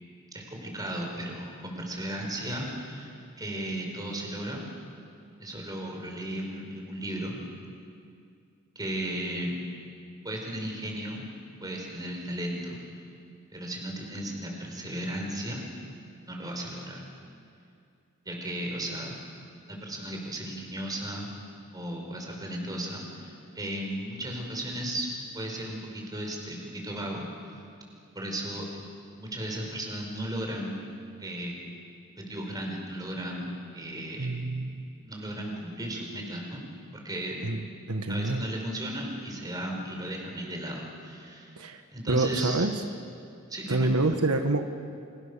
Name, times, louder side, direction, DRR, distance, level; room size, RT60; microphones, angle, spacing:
voice 1, 0.3-3.1 3.4-4.6 5.4-7.4 8.7-9.6 10.2-11.2 11.6-12.8 13.5-15.6 16.3-17.0 18.2-19.1 19.7-21.3 21.7-25.1 25.3-27.6 28.1-28.7 29.2-30.7 31.2-31.6 32.2-34.7 35.0-36.6 37.0-37.4 38.1-41.6 41.9-42.7 43.5-43.9, right 1 dB, 15° right, 1 dB, 5.1 m, -35 dB
voice 2, 34.2-34.9 37.4-37.6 37.9-38.4 41.6-41.8 42.1-42.8 43.7-44.6, right 2 dB, 90° right, 6 dB, 1.5 m, -27 dB
29.5 x 27.0 x 7.0 m, 2.4 s
head